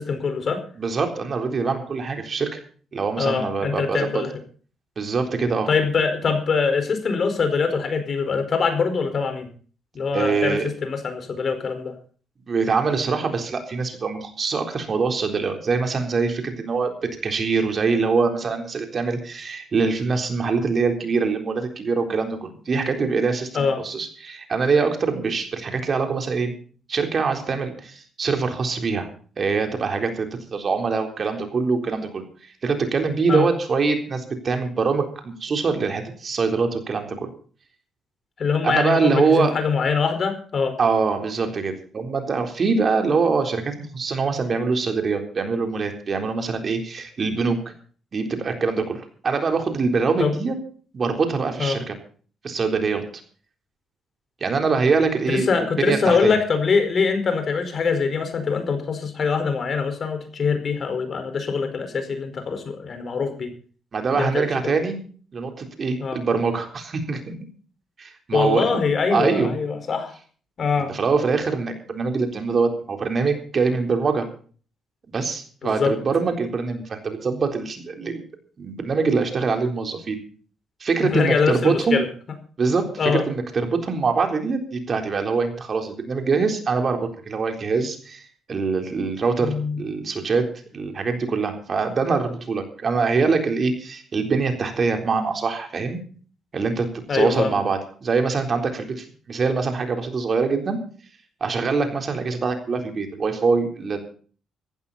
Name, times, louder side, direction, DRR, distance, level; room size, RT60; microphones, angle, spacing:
voice 1, 0.0-0.6 3.2-4.3 5.7-9.5 9.9-11.9 23.5-23.8 33.3-33.5 38.4-40.8 50.2-50.3 51.6-51.8 55.3-63.5 64.1-64.8 66.0-66.2 68.3-70.1 70.6-70.9 75.6-75.9 81.0-82.1 83.0-83.2 89.4-89.8 97.1-97.6, left 5 dB, 50° left, 8 dB, 4.8 m, -23 dB
voice 2, 0.8-2.6 2.9-4.2 5.0-5.7 10.1-10.6 12.5-26.5 26.9-29.1 29.4-32.2 32.6-37.3 38.6-39.5 40.8-47.7 48.1-50.6 50.9-51.9 52.4-53.0 54.4-56.4 63.9-65.0 65.3-67.4 68.0-68.8 69.1-69.6 70.8-74.3 75.1-78.2 78.6-80.2 80.8-82.0 82.6-90.5 90.7-96.0 96.5-100.8 101.4-104.0, right 4 dB, 45° right, 5 dB, 3.9 m, -24 dB
15.5 x 15.0 x 4.2 m, 0.42 s
cardioid pair, 90°, 0 cm